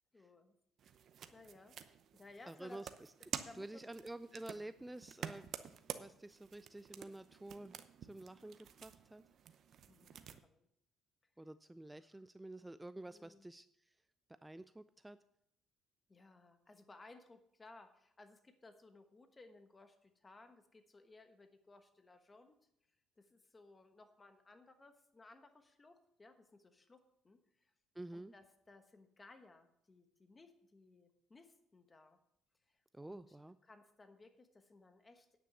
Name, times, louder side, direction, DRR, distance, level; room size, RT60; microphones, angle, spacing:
voice 1, 0.1-0.5 0.8-1.1 1.3-1.8 2.1-2.8 3.4-3.8 9.9-10.7 11.9-12.2 13.1-13.5 16.1-22.5 23.2-27.7 28.1-32.2 32.7-33.4 33.6-35.3, left 3 dB, 20° left, 7 dB, 1.2 m, -61 dB
sound 1, 0.8-10.4, right 8 dB, 55° right, 0.7 m, -50 dB
voice 2, 2.5-2.9 3.5-7.8 8.1-9.2 11.4-13.7 14.4-15.2 28.0-28.3 32.9-33.5, right 1 dB, 10° right, 13 dB, 0.3 m, -50 dB
9.7 x 6.0 x 7.0 m, 0.73 s
cardioid pair, 105°, 0 cm